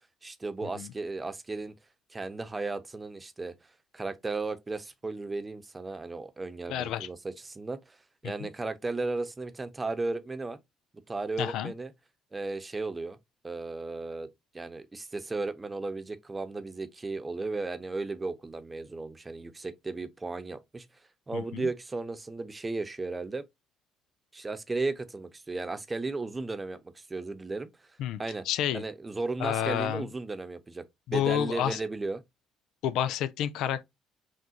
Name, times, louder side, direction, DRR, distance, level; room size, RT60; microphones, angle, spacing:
voice 1, 0.2-1.7 2.1-3.5 3.9-7.2 7.4-8.0 8.2-10.6 11.1-11.9 12.3-13.2 13.4-14.3 14.5-20.9 21.3-23.5 24.3-27.7 28.2-28.5 28.7-30.8 31.1-32.2, right 3 dB, 25° right, 0.8 m, -35 dB
voice 2, 6.7-7.1 8.4-8.5 11.4-11.7 21.3-21.7 28.0-28.2 28.5-28.8 29.4-30.1 31.1-31.8 32.8-33.8, left 10 dB, 70° left, 0.3 m, -29 dB
6.1 x 2.3 x 2.9 m
hypercardioid pair, 55°, 0 cm